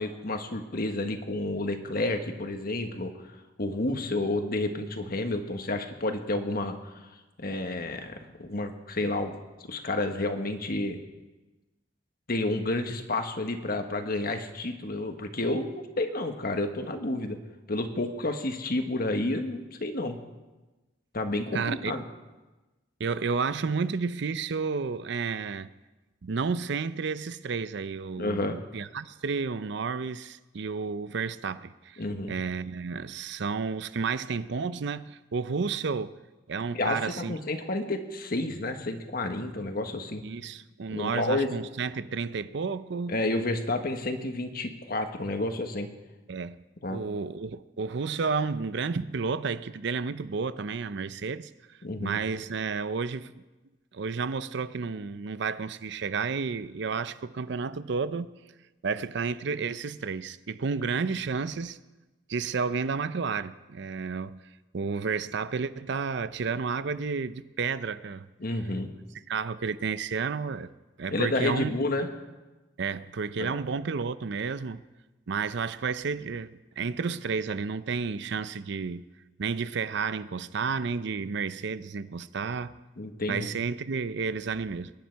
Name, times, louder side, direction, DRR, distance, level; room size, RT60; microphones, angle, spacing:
voice 1, 0.0-3.1 3.6-6.7 7.4-9.4 9.7-11.0 12.3-17.4 17.7-20.2 21.1-22.0 28.2-28.6 32.0-32.3 36.7-40.2 40.9-41.5 43.1-45.9 46.8-47.0 51.8-52.2 68.4-68.9 71.1-72.1 73.4-73.6 83.0-83.5, left 2 dB, 55° left, 1.4 m, -30 dB
voice 2, 21.5-21.9 23.0-25.7 26.2-36.2 36.5-37.4 40.2-43.2 46.3-46.6 46.9-51.5 52.0-53.3 53.9-58.3 58.8-61.8 62.3-64.4 64.7-68.3 69.3-70.7 71.0-71.7 72.8-74.8 75.3-79.0 79.4-82.8 83.3-84.9, right 5 dB, 70° right, 0.5 m, -31 dB
22.0 x 10.5 x 4.6 m
head